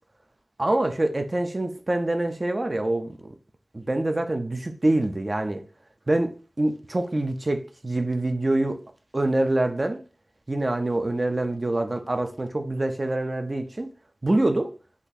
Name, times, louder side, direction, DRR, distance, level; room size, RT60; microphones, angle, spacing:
voice 1, 0.6-3.3 3.7-5.6 6.1-8.8 9.1-10.0 10.5-13.9 14.2-14.7, right 2 dB, 35° right, 0.3 m, -25 dB
3.7 x 2.3 x 2.6 m
wide cardioid pair, 75°, 0 cm